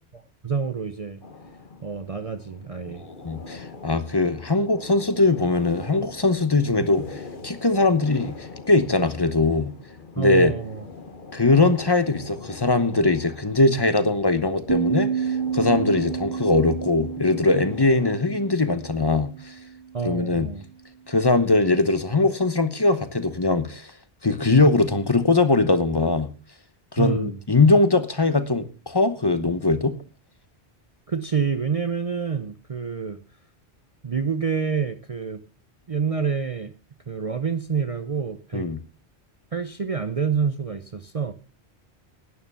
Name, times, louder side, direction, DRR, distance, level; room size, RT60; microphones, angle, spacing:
voice 1, 0.1-1.2 1.8-3.0 6.8-6.9 10.2-10.8 19.9-20.7 27.0-27.4 31.1-33.2 34.0-35.4 35.9-36.7 37.1-38.7 39.5-41.3, right 6 dB, 35° right, 10 dB, 0.7 m, -27 dB
sound 1, 1.2-18.2, left 4 dB, 50° left, 1.4 m, -42 dB
voice 2, 3.2-9.7 10.2-10.5 11.3-19.5 20.0-20.5 21.1-23.9 24.2-26.3 26.9-30.0 38.5-38.8, left 3 dB, 25° left, 12 dB, 0.9 m, -21 dB
sound 2, 14.7-19.8, right 7 dB, 65° right, 1.5 m, -29 dB
11.5 x 9.7 x 5.6 m, 0.37 s
omnidirectional pair, 1.1 m